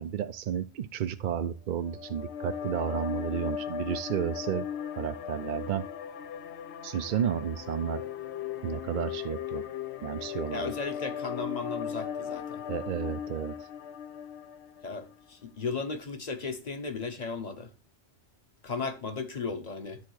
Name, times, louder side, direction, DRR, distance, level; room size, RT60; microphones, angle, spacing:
voice 1, 0.0-4.7 5.0-5.9 6.8-8.0 8.6-9.6 10.0-10.7 12.7-13.5, right 8 dB, 60° right, 0.5 m, -32 dB
sound 1, 1.8-15.1, left 8 dB, 75° left, 0.9 m, -37 dB
voice 2, 10.5-12.6 14.8-17.7 18.6-20.0, left 4 dB, 40° left, 1.0 m, -35 dB
10.5 x 3.7 x 6.4 m
omnidirectional pair, 1.2 m